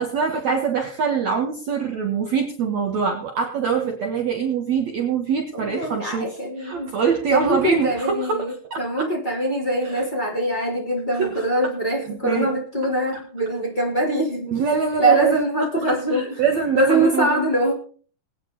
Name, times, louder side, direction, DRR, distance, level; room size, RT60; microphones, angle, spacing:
voice 1, 0.0-6.3 6.6-9.1 9.8-10.1 11.2-11.4 12.1-12.5 14.5-15.4 15.9-17.4, right 6 dB, 55° right, 2 dB, 2.3 m, -24 dB
voice 2, 5.5-6.9 7.3-14.5 15.0-16.4 16.7-17.7, right 1 dB, 10° left, -2 dB, 3.6 m, -23 dB
20.5 x 9.3 x 4.1 m, 0.43 s
omnidirectional pair, 4.4 m